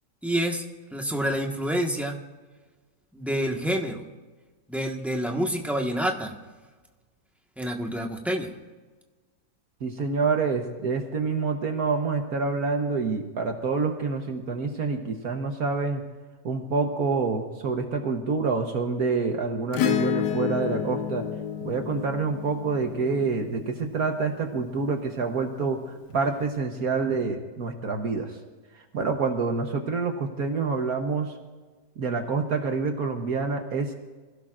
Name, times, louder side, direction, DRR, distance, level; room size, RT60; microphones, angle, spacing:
voice 1, 0.2-0.6 0.9-2.2 3.1-4.0 4.7-6.3 7.6-8.5, equal, ahead, 1 dB, 1.3 m, -28 dB
voice 2, 9.8-16.0 16.4-21.3 21.6-28.4 28.7-31.4 32.0-33.9, right 4 dB, 65° right, 4 dB, 1.6 m, -27 dB
Acoustic guitar / Strum, 19.7-24.3 26.2-26.3, left 9 dB, 80° left, 1.4 m, -30 dB
26.5 x 16.5 x 2.6 m, 1.3 s
omnidirectional pair, 1.8 m